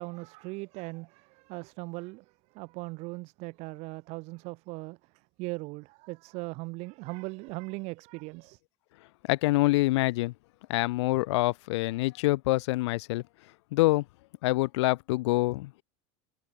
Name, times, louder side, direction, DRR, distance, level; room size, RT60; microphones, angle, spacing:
voice 1, 0.0-2.2 2.5-5.0 5.4-8.6, right 25 dB, 45° right, 2.9 m, -39 dB
voice 2, 9.3-10.3 10.7-13.2 13.7-14.0 14.4-15.8, left 20 dB, 75° left, 1.1 m, -26 dB
supercardioid pair, 160°, 15 cm